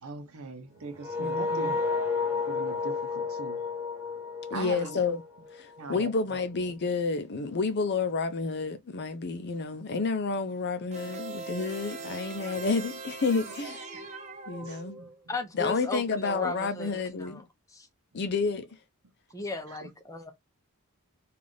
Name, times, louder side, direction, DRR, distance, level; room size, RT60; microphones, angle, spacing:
voice 1, 0.0-1.8 2.5-3.6 4.5-5.0 5.8-6.1 14.6-15.1, right 4 dB, 70° right, 0.7 m, -40 dB
sound 1, 1.0-5.8, left 4 dB, 10° right, 1.3 m, -31 dB
voice 2, 1.2-1.7 4.5-5.2 5.5-13.9 14.5-15.0 15.5-17.4 18.1-18.7, left 4 dB, 50° left, 0.5 m, -30 dB
sound 2, 10.9-15.2, right 3 dB, 30° right, 0.7 m, -41 dB
voice 3, 15.3-17.4 17.7-17.9 19.3-20.3, left 3 dB, 15° left, 0.7 m, -36 dB
3.3 x 2.4 x 3.8 m
head